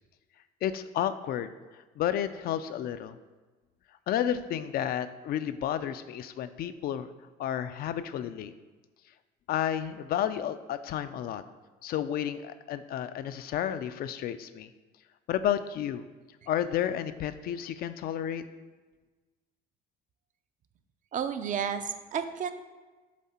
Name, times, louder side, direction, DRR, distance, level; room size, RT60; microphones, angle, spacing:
voice 1, 0.6-1.5 2.0-3.2 4.1-7.1 7.4-8.5 9.5-11.4 11.8-14.7 15.3-16.0 16.5-18.4, left 10 dB, 65° left, 12 dB, 0.4 m, -31 dB
voice 2, 21.1-22.5, right 7 dB, 50° right, 9 dB, 0.5 m, -31 dB
7.4 x 3.5 x 4.3 m, 1.3 s
cardioid pair, 110°, 17 cm